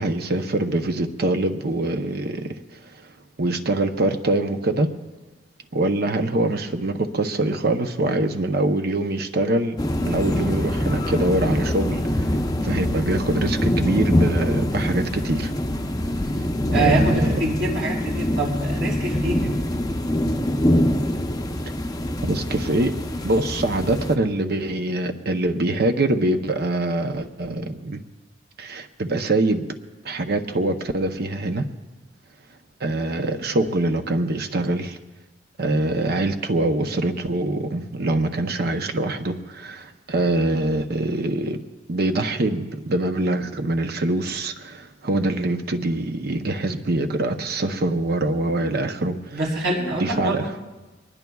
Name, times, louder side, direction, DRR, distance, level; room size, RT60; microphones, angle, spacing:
voice 1, 0.0-3.1 3.4-4.9 5.7-15.5 16.7-17.4 22.2-22.9 23.2-28.0 28.6-29.7 30.0-31.7 32.8-35.0 35.6-41.6 41.9-49.4 49.9-50.5, right 2 dB, 55° right, 7 dB, 0.7 m, -24 dB
sound 1, 9.8-24.2, left 1 dB, 20° left, 0.7 m, -24 dB
voice 2, 16.7-19.6 49.3-50.5, right 2 dB, 75° right, -3 dB, 3.7 m, -25 dB
23.0 x 20.0 x 2.3 m, 1.2 s
head